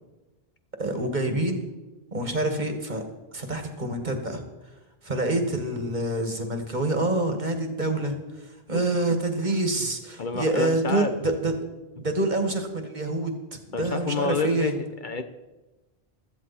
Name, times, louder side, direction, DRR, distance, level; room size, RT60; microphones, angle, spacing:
voice 1, 0.8-1.7 2.1-3.0 3.3-4.4 5.0-11.5 12.0-14.7, right 2 dB, 45° right, 5 dB, 1.9 m, -27 dB
voice 2, 10.2-11.2 12.0-12.1 13.7-15.2, left 5 dB, 50° left, 8 dB, 1.0 m, -29 dB
16.5 x 13.0 x 4.3 m, 1.1 s
omnidirectional pair, 1.1 m